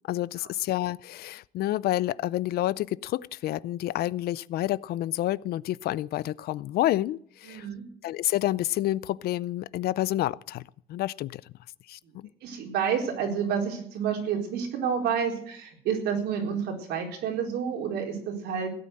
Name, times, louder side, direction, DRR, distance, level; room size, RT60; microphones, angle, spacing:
voice 1, 0.1-7.7 8.0-10.6 10.9-11.4 11.9-12.3, left 14 dB, 70° left, 21 dB, 0.5 m, -29 dB
voice 2, 7.4-7.8 12.0-18.7, right 7 dB, 80° right, 1 dB, 4.2 m, -29 dB
16.5 x 9.3 x 7.8 m, 0.63 s
cardioid pair, 110°, 17 cm